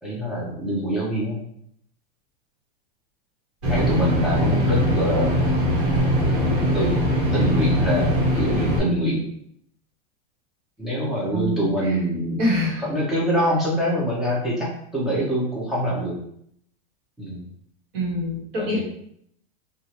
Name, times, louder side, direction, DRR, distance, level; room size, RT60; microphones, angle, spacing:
voice 1, 0.0-1.4 3.7-5.4 6.7-7.0 7.3-8.1 8.3-9.2 10.8-12.4 12.8-16.2 17.2-17.4 18.6-18.8, equal, ahead, -6 dB, 0.4 m, -24 dB
sound 1, 3.6-8.8, equal, 80° right, 1.3 m, -21 dB
voice 2, 3.8-4.6 11.3-12.0 12.4-12.9 17.9-18.8, left 1 dB, 45° right, -4 dB, 1.2 m, -26 dB
3.1 x 2.4 x 2.8 m, 0.70 s
supercardioid pair, 160°, 32 cm